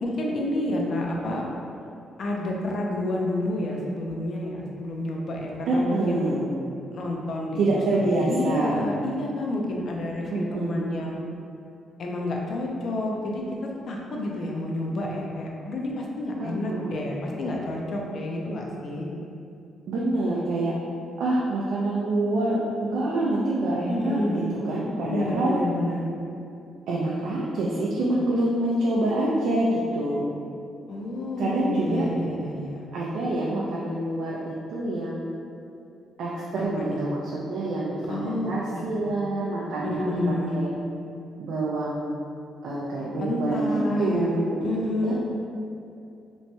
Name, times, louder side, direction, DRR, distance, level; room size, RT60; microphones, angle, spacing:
voice 1, 0.0-1.5 2.2-6.3 6.9-11.2 12.0-19.1 23.9-24.6 25.0-26.1 30.9-32.9 36.6-37.0 38.1-39.2 39.8-40.7 43.2-45.1, left 1 dB, 55° left, -1 dB, 0.4 m, -29 dB
voice 2, 5.7-6.5 7.6-8.8 10.3-10.9 16.4-16.9 19.9-20.7 21.2-25.5 26.9-30.3 31.4-32.0 32.9-35.3 36.2-40.7 41.4-42.1 42.6-43.7 44.0-44.6 45.0-45.1, right 2 dB, 75° right, -6 dB, 0.4 m, -26 dB
2.9 x 2.2 x 2.7 m, 2.6 s
cardioid pair, 90°, 0 cm